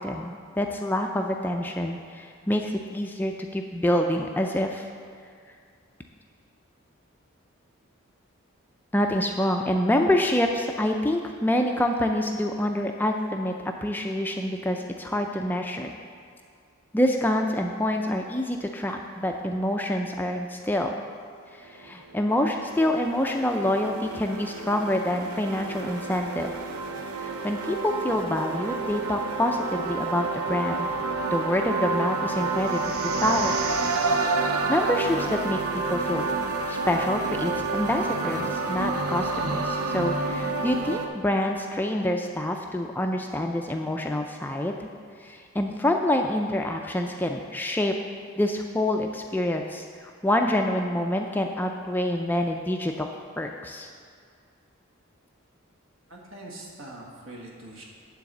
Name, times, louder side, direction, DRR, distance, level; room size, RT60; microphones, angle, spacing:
voice 1, 0.0-4.9 8.9-13.5 13.8-15.9 16.9-20.9 21.5-26.5 27.2-30.9 31.3-33.8 34.4-36.2 36.6-44.9 45.2-47.9 48.4-49.9 50.2-53.9, left 1 dB, 10° left, 3 dB, 0.3 m, -27 dB
sound 1, 21.8-41.1, right 3 dB, 90° right, 0.6 m, -29 dB
voice 2, 56.1-57.8, right 1 dB, 70° right, -2 dB, 1.5 m, -43 dB
9.5 x 4.0 x 7.1 m, 2.2 s
head